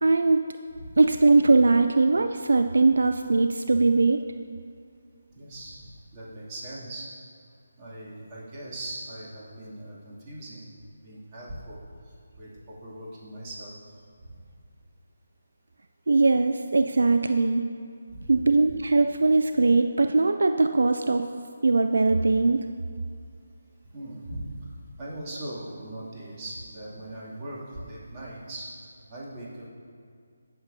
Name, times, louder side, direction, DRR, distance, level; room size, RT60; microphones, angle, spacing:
voice 1, 0.0-0.4 1.0-4.2 16.1-17.6 18.3-21.2 21.6-22.7, right 3 dB, 70° right, 7 dB, 0.3 m, -21 dB
voice 2, 5.3-7.1 7.8-10.7 11.0-11.8 12.4-13.7 14.2-14.3 18.1-18.4 23.9-24.5 25.0-28.7 29.1-29.7, right 1 dB, 25° right, -7 dB, 2.5 m, -40 dB
16.5 x 6.9 x 2.7 m, 2.3 s
figure-of-eight pair, 155°, 0 cm